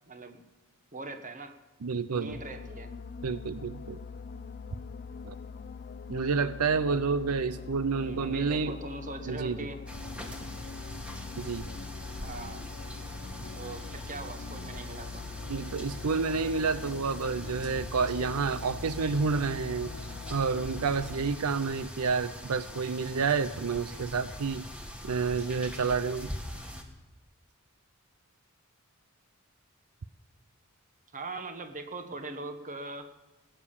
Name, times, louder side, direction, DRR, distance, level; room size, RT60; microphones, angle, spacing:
voice 1, 0.1-0.4 0.9-1.6 2.1-2.9 7.9-9.8 12.2-12.7 13.5-15.2 31.1-33.2, right 2 dB, 35° right, 7 dB, 1.3 m, -41 dB
voice 2, 1.8-2.4 3.2-4.0 5.2-5.3 6.1-8.7 9.3-9.6 11.4-11.7 15.5-19.9 20.3-24.6 25.0-26.3, right 5 dB, 90° right, 14 dB, 0.6 m, -29 dB
sound 1, 2.3-21.4, left 5 dB, 45° left, 0.5 m, -43 dB
sound 2, 9.9-26.8, equal, 5° right, 1.6 m, -42 dB
18.5 x 8.9 x 7.1 m, 1.1 s
head